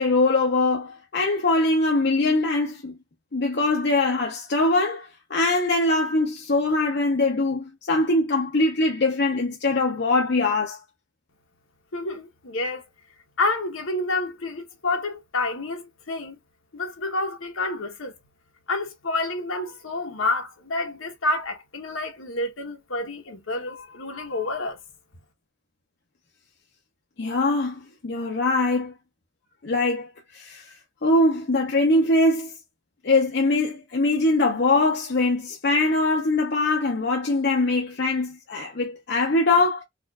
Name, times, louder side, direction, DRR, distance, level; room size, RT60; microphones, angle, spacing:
voice 1, 0.0-3.0 3.3-10.8 27.2-28.9 29.6-30.6 31.0-32.5 33.0-39.8, left 2 dB, 55° left, 0.7 m, -22 dB
voice 2, 11.9-12.8 13.4-16.4 16.7-18.2 18.7-24.8, left 2 dB, 70° left, 1.1 m, -29 dB
4.2 x 2.5 x 2.3 m
head